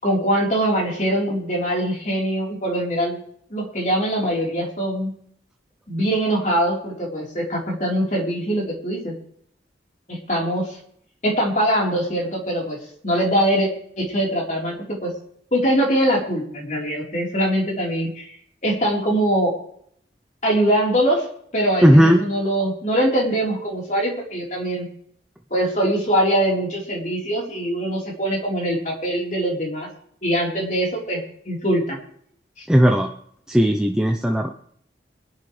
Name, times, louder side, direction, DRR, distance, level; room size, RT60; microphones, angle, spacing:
voice 1, 0.0-3.2 3.5-5.1 5.9-9.1 10.1-10.8 11.2-12.8 13.0-13.7 14.0-15.1 15.5-18.3 18.6-19.5 20.4-21.3 21.5-24.9 25.5-29.9 30.2-31.2 31.5-32.0 32.6-32.7, right 1 dB, 40° left, -2 dB, 4.1 m, -22 dB
voice 2, 21.8-22.2 32.7-33.1 33.5-34.5, equal, 5° right, 2 dB, 0.7 m, -15 dB
23.5 x 11.0 x 3.3 m, 0.65 s
head